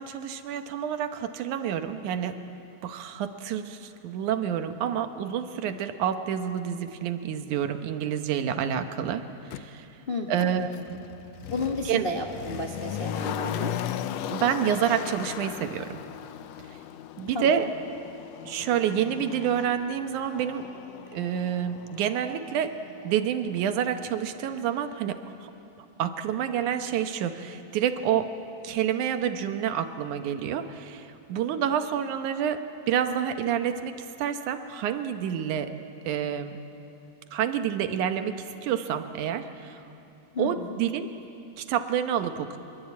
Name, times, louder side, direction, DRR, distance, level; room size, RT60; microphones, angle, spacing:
voice 1, 0.0-2.4 2.8-9.9 10.3-11.0 11.8-12.0 14.3-16.0 16.7-16.8 17.2-17.7 18.4-20.7 21.1-22.7 23.0-25.5 26.0-28.3 28.6-35.7 36.1-36.6 37.3-39.8 40.4-41.1 41.6-42.6, right 9 dB, 90° right, 8 dB, 2.5 m, -28 dB
Motor vehicle (road), 9.5-9.6 10.4-23.3 23.6-23.7, left 10 dB, 75° left, 1.7 m, -37 dB
voice 2, 10.1-10.5 11.5-13.8 17.3-17.7 40.3-40.7, left 2 dB, 40° left, 1 dB, 0.8 m, -32 dB
24.5 x 23.0 x 8.5 m, 2.8 s
omnidirectional pair, 3.4 m